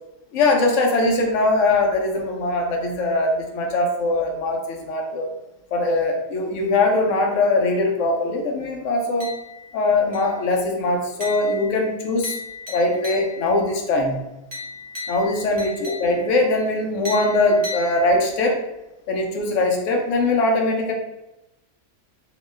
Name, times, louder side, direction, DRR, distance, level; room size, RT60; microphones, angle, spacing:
voice 1, 0.3-5.3 5.7-9.3 9.7-12.3 12.7-14.2 15.1-18.6 19.1-20.9, left 2 dB, 70° left, 2 dB, 0.8 m, -21 dB
sound 1, 9.2-9.8 10.1-10.5 11.2-13.6 14.5-16.4 17.0-18.5, left 3 dB, 40° right, 0.6 m, -36 dB
2.8 x 2.1 x 3.2 m, 0.95 s
omnidirectional pair, 1.5 m